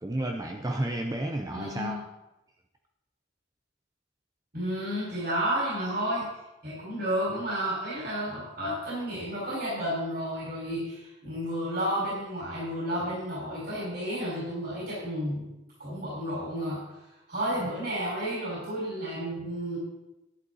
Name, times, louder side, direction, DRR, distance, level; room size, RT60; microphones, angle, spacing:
voice 1, 0.0-2.0, right 1 dB, 20° right, 3 dB, 0.6 m, -31 dB
voice 2, 1.5-2.0 4.5-6.3 6.6-15.5 15.8-17.0 17.3-19.8, equal, 50° right, -7 dB, 5.0 m, -31 dB
11.0 x 11.0 x 4.1 m, 0.98 s
head